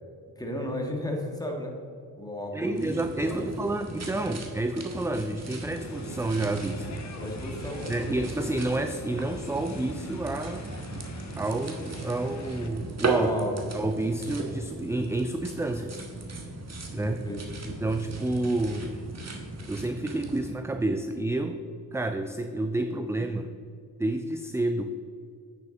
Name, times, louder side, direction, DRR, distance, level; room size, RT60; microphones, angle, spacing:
voice 1, 0.4-1.7 2.2-3.7 7.2-8.2 13.2-13.5 17.0-17.4, left 1 dB, 10° left, 1 dB, 1.6 m, -34 dB
voice 2, 2.5-7.1 7.9-10.7 11.4-13.3 13.7-16.1 16.9-17.2 17.6-18.9 19.7-23.5 24.0-24.9, right 2 dB, 10° right, 8 dB, 0.3 m, -29 dB
sound 1, 2.8-20.5, right 2 dB, 40° right, 1.4 m, -37 dB
sound 2, 5.7-12.7, left 3 dB, 45° left, 1.0 m, -44 dB
8.6 x 6.6 x 3.8 m, 2.4 s
cardioid pair, 65°, 39 cm